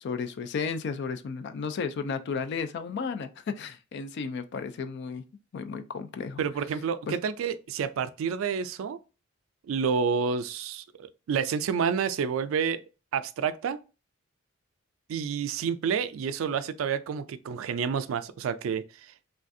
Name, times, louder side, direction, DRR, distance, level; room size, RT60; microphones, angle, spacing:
voice 1, 0.0-5.2 5.5-6.4 7.1-7.2, left 5 dB, 60° left, 0.4 m, -33 dB
voice 2, 6.4-9.0 9.7-12.8 13.1-13.8 15.1-18.8, right 6 dB, 80° right, 0.3 m, -29 dB
3.3 x 2.4 x 2.5 m
head